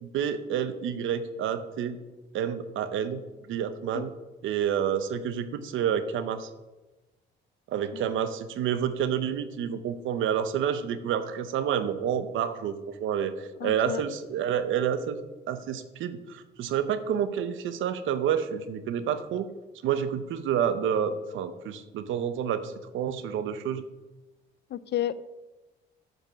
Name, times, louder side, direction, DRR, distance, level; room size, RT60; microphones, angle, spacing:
voice 1, 0.0-2.0 2.3-3.2 3.5-4.1 4.4-6.5 7.7-15.2 15.5-19.5 19.8-23.8, right 8 dB, 80° right, 12 dB, 0.8 m, -29 dB
voice 2, 13.6-14.0 24.7-25.1, left 12 dB, 60° left, 16 dB, 0.5 m, -31 dB
8.8 x 5.4 x 6.1 m, 1.1 s
cardioid pair, 90°, 20 cm